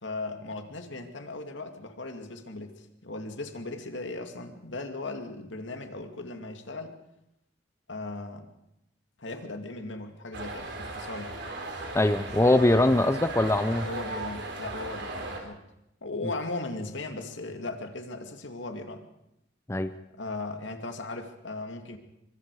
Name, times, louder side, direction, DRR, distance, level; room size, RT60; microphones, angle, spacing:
voice 1, 0.0-6.9 7.9-8.5 9.2-11.4 13.8-15.6 16.0-19.0 20.2-22.0, left 2 dB, 70° left, 6 dB, 2.4 m, -37 dB
sound 1, 10.3-15.4, right 2 dB, 65° right, 4.0 m, -37 dB
voice 2, 11.9-13.9 19.7-19.9, left 1 dB, 15° left, 10 dB, 0.7 m, -22 dB
24.5 x 24.5 x 4.9 m, 0.83 s
head